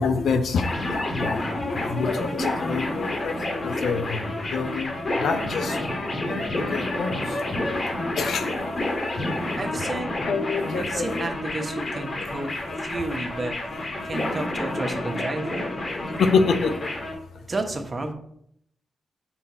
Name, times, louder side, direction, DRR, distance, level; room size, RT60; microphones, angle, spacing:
voice 1, 0.0-4.9 5.2-5.8 6.2-7.1 8.2-8.5 10.2-11.3 12.2-12.3 16.2-16.9, left 5 dB, 80° left, 8 dB, 0.6 m, -26 dB
sound 1, 0.6-17.1, left 1 dB, 50° left, 1.8 m, -29 dB
voice 2, 9.6-10.2 10.7-12.5 12.8-13.6 14.0-15.7 17.5-18.1, right 2 dB, 40° right, 5 dB, 1.1 m, -31 dB
5.6 x 4.5 x 4.2 m, 0.70 s
cardioid pair, 55°, 0 cm